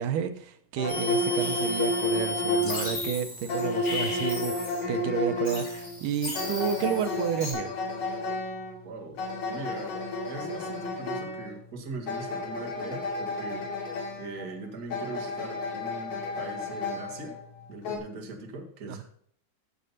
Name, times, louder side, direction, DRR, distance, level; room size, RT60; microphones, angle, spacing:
voice 1, 0.0-7.7 18.9-19.0, right 8 dB, 80° right, 2.4 m, -31 dB
sound 1, 0.8-18.0, left 2 dB, 80° left, 4.1 m, -32 dB
sound 2, 0.9-5.0 5.4-7.5, left 1 dB, 40° left, 4.7 m, -35 dB
voice 2, 8.8-9.2 9.5-9.9 10.3-17.4 17.7-19.0, right 3 dB, 35° right, 1.8 m, -40 dB
13.0 x 7.6 x 4.1 m
omnidirectional pair, 3.7 m